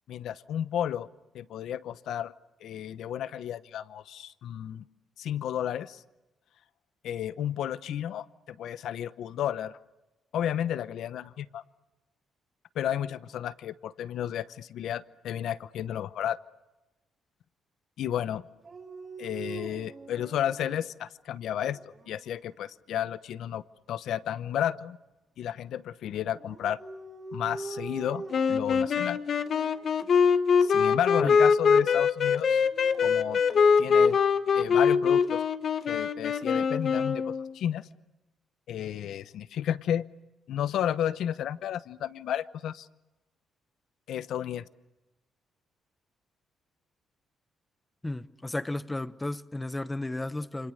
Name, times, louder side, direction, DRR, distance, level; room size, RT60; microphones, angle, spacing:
voice 1, 0.1-1.1 1.3-2.3 2.6-4.8 5.2-6.0 7.0-9.8 10.3-11.6 12.7-16.4 18.0-18.5 19.2-21.8 22.1-23.6 23.9-25.0 25.4-26.8 27.3-29.2 30.6-32.7 33.0-33.4 33.8-34.2 34.5-35.4 35.9-37.9 38.7-40.0 40.5-42.9 44.1-44.6, left 10 dB, 75° left, 15 dB, 0.9 m, -32 dB
Dog, 18.6-20.9 21.5-22.2 26.4-28.7 29.5-29.9 32.5-33.8, right 3 dB, 35° right, 3.1 m, -43 dB
sound 1, 28.3-37.5, left 6 dB, 55° left, 1.3 m, -23 dB
voice 2, 48.0-50.7, left 2 dB, 15° left, 13 dB, 1.1 m, -33 dB
29.0 x 26.0 x 6.6 m, 1.0 s
cardioid pair, 90°, 0 cm